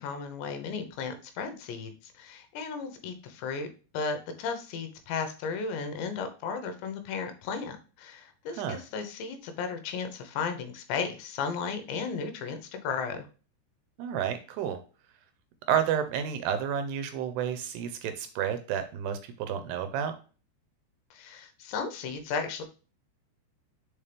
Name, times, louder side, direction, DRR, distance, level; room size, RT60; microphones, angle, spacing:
voice 1, 0.0-3.7 3.9-13.3 21.1-22.6, left 5 dB, 80° left, 7 dB, 3.2 m, -35 dB
voice 2, 14.0-14.8 15.7-20.2, right 8 dB, 80° right, 9 dB, 2.6 m, -30 dB
7.3 x 4.5 x 3.4 m, 0.36 s
omnidirectional pair, 5.1 m